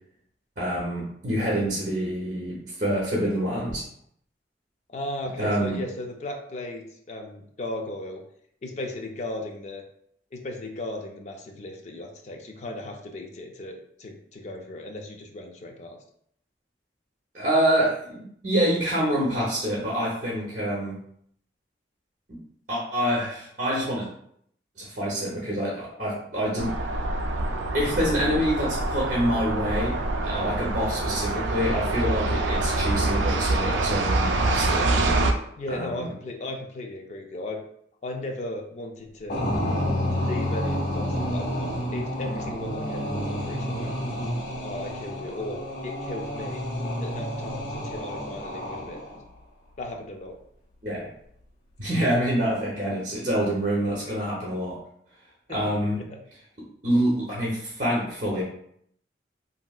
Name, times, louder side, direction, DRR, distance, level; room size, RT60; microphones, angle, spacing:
voice 1, 0.6-3.8 5.4-5.8 17.3-21.0 22.3-22.4 22.7-24.1 24.8-26.7 27.7-34.9 35.7-36.1 50.8-51.1 51.8-54.8 55.5-56.0 56.8-58.4, equal, 45° right, -6 dB, 0.8 m, -26 dB
voice 2, 4.9-8.2 8.6-9.8 10.3-16.0 35.6-37.6 38.0-39.5 40.1-43.9 44.6-46.7 47.0-49.0 49.8-50.4 55.5-55.7 56.1-56.2, left 1 dB, 40° left, 2 dB, 0.4 m, -36 dB
sound 1, 26.6-35.3, right 2 dB, 90° right, 0.4 m, -25 dB
sound 2, 39.3-49.2, equal, 75° left, 1.3 m, -30 dB
3.1 x 2.7 x 2.3 m, 0.69 s
head